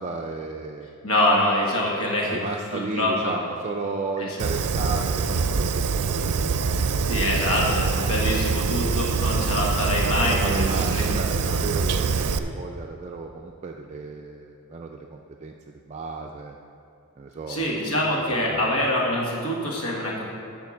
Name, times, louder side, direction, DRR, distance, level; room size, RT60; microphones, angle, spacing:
voice 1, 0.0-1.0 2.3-6.6 10.0-16.6 17.2-18.0 18.3-18.8, right 3 dB, 30° right, 1 dB, 0.4 m, -34 dB
voice 2, 1.0-2.4 2.7-3.3 4.2-4.4 7.1-11.1 11.4-11.6 17.5-20.3, left 1 dB, 65° left, -2 dB, 1.7 m, -25 dB
Fire, 4.4-12.4, right 5 dB, 90° right, 0.5 m, -24 dB
9.1 x 5.8 x 7.3 m, 2.5 s
head